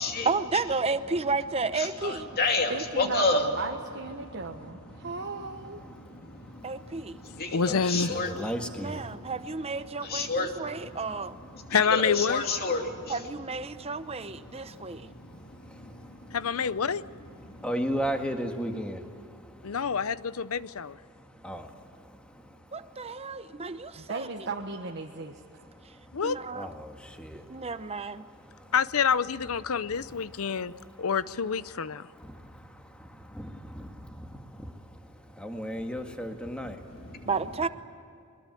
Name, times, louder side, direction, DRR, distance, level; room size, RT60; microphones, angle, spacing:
voice 1, 0.2-2.3 6.6-7.2 8.8-11.3 13.1-15.1 22.7-24.3 26.2-26.7 27.5-28.3 37.2-37.7, right 4 dB, 25° right, 0.8 m, -32 dB
voice 2, 1.8-3.5 6.0-6.2 6.5-6.9 7.2-8.3 10.0-10.6 11.7-13.1 14.9-16.4 17.5-17.6 36.9-37.3, left 3 dB, 45° left, 2.8 m, -30 dB
voice 3, 2.7-5.8 24.0-25.7, right 3 dB, 50° right, 1.3 m, -36 dB
voice 4, 5.9-9.3 11.6-11.7 13.7-14.1 14.4-16.6 17.2-24.1 25.6-28.7 29.6-37.3, equal, 5° left, 1.8 m, -39 dB
voice 5, 7.5-8.1 11.7-12.5 16.3-17.0 19.6-20.9 26.1-26.4 28.7-30.7 31.0-32.0, left 6 dB, 70° left, 0.6 m, -27 dB
22.5 x 21.5 x 9.2 m
head